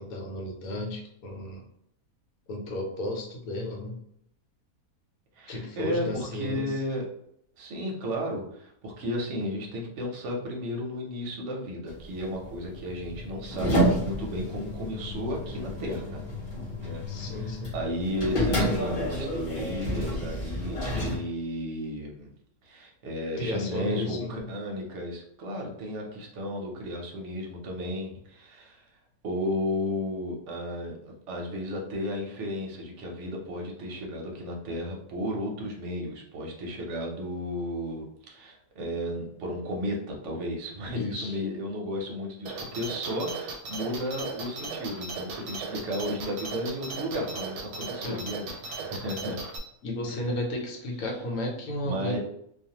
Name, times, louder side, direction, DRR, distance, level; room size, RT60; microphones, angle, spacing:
voice 1, 0.0-1.6 2.5-4.0 5.5-6.7 17.1-17.8 23.4-24.5 40.9-41.4 48.0-48.2 49.8-52.2, left 1 dB, 75° left, 0 dB, 1.2 m, -33 dB
voice 2, 5.4-7.1 7.6-16.2 16.8-22.3 22.6-28.9 29.2-49.4 50.0-50.3 51.8-52.2, equal, 60° right, 0 dB, 0.9 m, -34 dB
sound 1, 11.9-21.2, equal, 40° left, 0.8 m, -30 dB
sound 2, 42.5-49.6, right 4 dB, 85° right, 1.1 m, -37 dB
2.4 x 2.4 x 2.8 m, 0.73 s
omnidirectional pair, 1.6 m